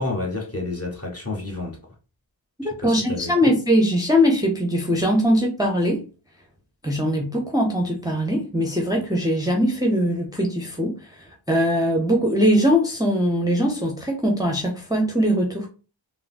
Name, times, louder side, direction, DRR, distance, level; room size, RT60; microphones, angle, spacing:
voice 1, 0.0-1.8 2.6-3.6, left 2 dB, 30° left, 1.2 m, -30 dB
voice 2, 2.8-6.0 6.8-15.7, equal, 10° right, 0.6 m, -21 dB
3.6 x 2.0 x 2.5 m
cardioid pair, 55°, 46 cm